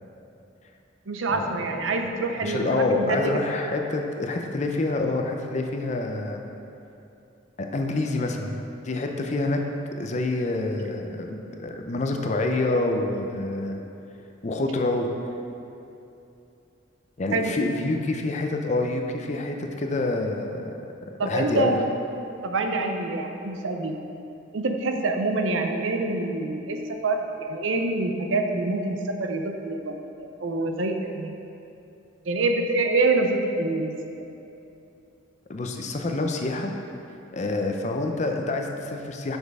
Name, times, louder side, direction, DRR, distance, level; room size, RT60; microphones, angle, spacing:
voice 1, 1.1-3.3 17.3-17.5 21.2-21.8 22.4-24.0 24.5-31.3 32.3-33.9, right 2 dB, 80° right, 4 dB, 0.6 m, -26 dB
voice 2, 2.3-6.4 7.6-8.6 8.8-9.6 10.0-13.8 14.4-15.1 17.2-20.7 21.3-21.8 35.5-36.7 37.3-39.4, left 2 dB, 35° left, 3 dB, 0.5 m, -27 dB
6.1 x 5.2 x 4.8 m, 2.8 s
head